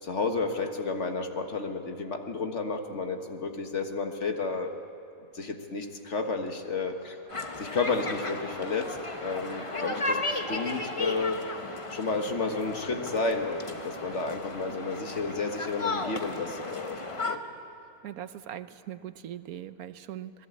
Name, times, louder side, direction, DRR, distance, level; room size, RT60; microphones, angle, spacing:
voice 1, 0.0-4.7 5.3-7.2 7.6-11.4 11.9-17.4, left 3 dB, 50° left, 5 dB, 1.7 m, -31 dB
sound 1, 5.2-19.8, equal, 85° left, 7.9 m, -51 dB
sound 2, 7.3-17.4, left 2 dB, 25° left, 1.0 m, -35 dB
voice 2, 18.0-20.5, right 11 dB, 75° right, 12 dB, 1.2 m, -40 dB
26.5 x 19.5 x 8.6 m, 2.5 s
omnidirectional pair, 1.6 m